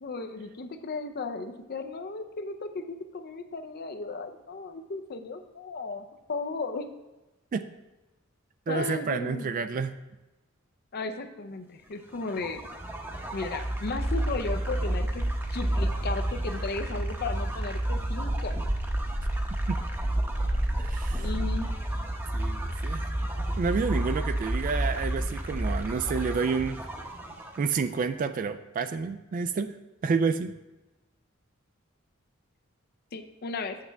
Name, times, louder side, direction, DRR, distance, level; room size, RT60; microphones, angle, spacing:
voice 1, 0.0-6.9 8.7-9.6 10.9-12.6 13.3-18.5 21.2-21.7 33.1-33.8, left 3 dB, 50° left, 8 dB, 0.5 m, -35 dB
voice 2, 8.7-9.9 19.7-19.8 20.8-21.3 22.3-23.1 23.6-26.8 27.6-29.7 30.0-30.5, right 5 dB, 40° right, 11 dB, 0.3 m, -29 dB
sound 1, 12.1-27.8, right 1 dB, 10° right, 0.8 m, -30 dB
7.1 x 6.5 x 3.4 m, 1.1 s
head